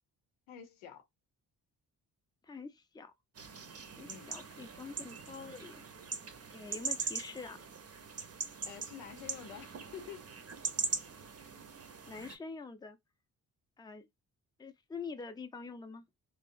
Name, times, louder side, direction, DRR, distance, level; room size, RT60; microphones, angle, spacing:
voice 1, 0.5-1.0 4.1-4.3 8.6-10.2, left 9 dB, 85° left, 0.7 m, -48 dB
voice 2, 2.4-3.1 4.0-5.8 6.5-7.7 11.4-11.5 12.0-13.0 13.8-14.1 14.6-16.0, left 4 dB, 10° left, 0.5 m, -45 dB
sound 1, 3.4-12.4, right 5 dB, 35° right, 0.7 m, -41 dB
2.9 x 2.0 x 2.5 m
hypercardioid pair, 40°, 44 cm